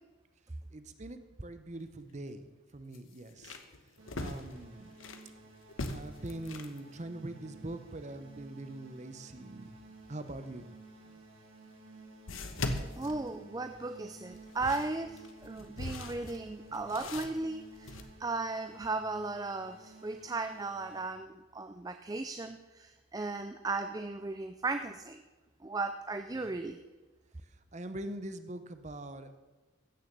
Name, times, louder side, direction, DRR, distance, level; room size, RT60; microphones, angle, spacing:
voice 1, 0.7-2.5 2.7-3.6 4.2-4.9 5.9-9.8 10.1-10.7 26.4-26.5 27.7-29.4, right 1 dB, 35° right, 10 dB, 0.8 m, -43 dB
sound 1, 1.7-1.9 2.3-2.4 2.9-5.3 5.7-6.8 11.0-11.1 12.3-13.8 14.3-18.0, left 2 dB, 85° left, 1.1 m, -40 dB
sound 2, 4.0-21.0, right 2 dB, 75° right, 3.3 m, -54 dB
voice 2, 13.0-25.2 25.6-26.8, right 3 dB, 20° right, 8 dB, 0.4 m, -36 dB
15.5 x 6.9 x 6.7 m, 1.2 s
head